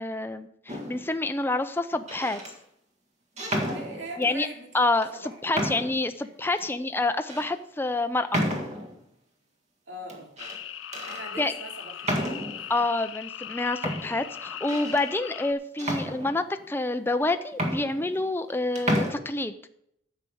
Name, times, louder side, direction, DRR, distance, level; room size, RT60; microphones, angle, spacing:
voice 1, 0.0-2.4 4.2-4.5 4.7-8.4 11.4-11.5 12.7-19.5, left 2 dB, 10° left, 8 dB, 0.4 m, -28 dB
sound 1, 0.7-1.1 1.9-2.5 3.4-4.3 5.0-5.1 5.5-6.1 6.6-6.7 7.3-7.5 8.3-9.0 10.1-10.6 10.9-11.2 12.0-12.7 13.4-13.5 13.8-15.1 15.8-16.6 17.2-17.3 17.5-18.5 18.8-19.1, equal, 35° right, 1.8 m, -31 dB
voice 2, 3.6-4.7 5.1-5.9 6.2-6.3 9.9-10.3 11.1-12.7, right 1 dB, 70° right, 1 dB, 2.8 m, -42 dB
sound 2, 10.4-15.5, left 10 dB, 85° left, 0.6 m, -39 dB
9.6 x 6.6 x 7.8 m, 0.74 s
head